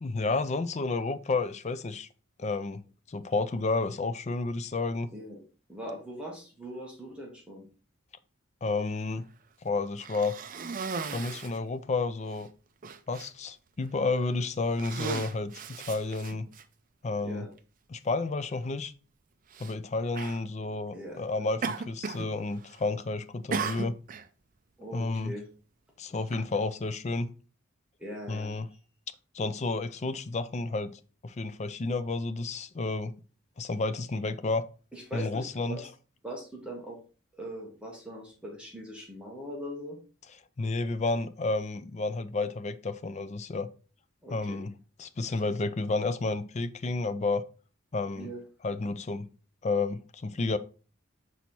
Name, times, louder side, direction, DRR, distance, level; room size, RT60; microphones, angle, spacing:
voice 1, 0.0-2.1 2.4-2.8 3.1-5.1 8.6-9.3 9.6-10.4 11.1-12.5 13.1-15.5 15.8-16.5 17.0-17.4 17.9-18.9 19.6-23.9 24.9-25.3 26.0-27.3 28.3-28.7 29.3-33.1 33.6-34.6 35.1-35.8 40.6-43.7 44.3-44.7 45.0-47.4 47.9-48.3 48.6-49.3 49.6-50.6, left 3 dB, 35° left, 0.4 m, -31 dB
voice 2, 5.7-7.7 17.2-17.5 20.9-21.2 24.8-25.5 28.0-28.5 34.9-35.8 36.2-37.0 37.3-40.0 44.2-44.6 45.2-45.4 48.2-48.4, equal, 5° right, 1.4 m, -41 dB
Cough, 10.0-11.6 12.3-12.4 12.8-13.3 14.0-14.3 14.7-16.6 17.6-17.7 19.5-19.7 20.1-20.4 21.6-22.3 22.6-23.0 23.5-24.3, right 5 dB, 40° right, 0.4 m, -36 dB
5.9 x 4.1 x 4.4 m
head